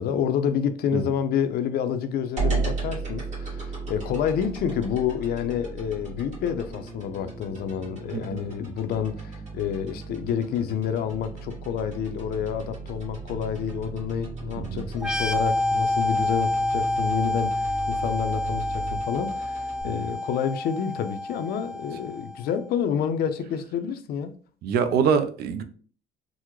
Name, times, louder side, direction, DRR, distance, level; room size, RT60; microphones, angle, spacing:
voice 1, 0.0-24.4, left 8 dB, 65° left, 0.4 m, -28 dB
sound 1, 2.4-19.8, right 4 dB, 40° right, 1.6 m, -35 dB
sound 2, 15.0-22.5, left 2 dB, 5° right, 0.3 m, -28 dB
voice 2, 24.6-25.6, right 6 dB, 70° right, 0.5 m, -24 dB
3.5 x 2.0 x 3.0 m
cardioid pair, 110°, 17 cm